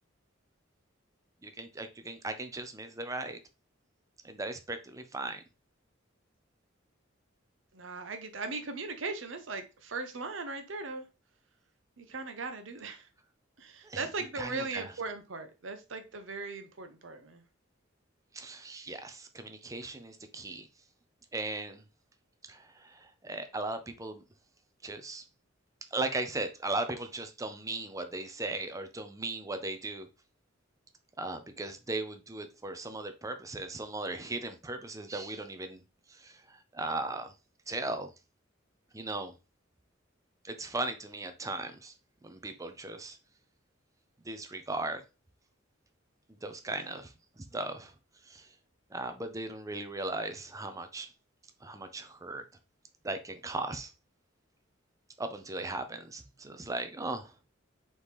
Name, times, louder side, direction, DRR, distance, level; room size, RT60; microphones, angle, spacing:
voice 1, 1.4-3.4 4.2-5.4 13.8-14.1 14.3-14.9 18.3-20.7 21.3-21.8 22.5-24.2 24.8-25.2 25.9-30.1 31.2-35.8 36.1-37.3 37.7-38.1 38.9-39.3 40.4-41.9 42.2-43.2 44.2-45.0 46.4-47.9 48.2-48.5 48.9-51.1 51.6-52.4 53.0-53.9 55.2-57.3, right 2 dB, 15° right, 0.5 m, -37 dB
voice 2, 7.7-11.0 12.0-13.1 13.6-17.4 46.7-46.9, right 3 dB, 70° right, 0.8 m, -39 dB
4.2 x 3.1 x 3.5 m
head